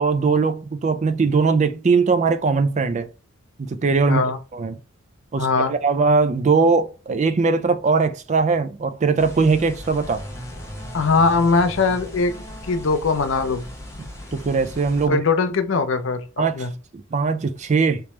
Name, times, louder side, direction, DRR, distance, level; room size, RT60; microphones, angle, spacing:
voice 1, 0.0-3.1 3.6-4.3 4.5-4.8 5.3-10.2 14.3-15.2 16.4-16.7 16.9-18.0, right 4 dB, 35° right, 0.4 m, -20 dB
voice 2, 5.4-5.7 10.9-12.3 12.6-13.7 15.1-16.2 16.6-16.7, left 4 dB, 65° left, 0.5 m, -20 dB
sound 1, 9.2-15.1, left 1 dB, 15° left, 0.8 m, -37 dB
3.4 x 3.0 x 3.0 m
head